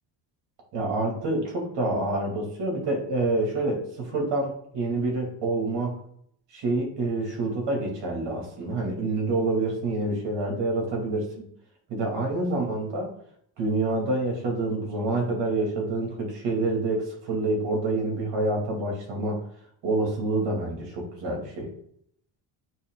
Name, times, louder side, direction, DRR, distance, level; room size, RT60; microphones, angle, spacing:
voice 1, 0.7-6.0 6.5-11.5 11.9-13.1 13.6-19.4 19.8-21.7, right 2 dB, 70° right, 0 dB, 2.4 m, -27 dB
8.8 x 3.2 x 3.7 m, 0.66 s
cardioid pair, 140°, 43 cm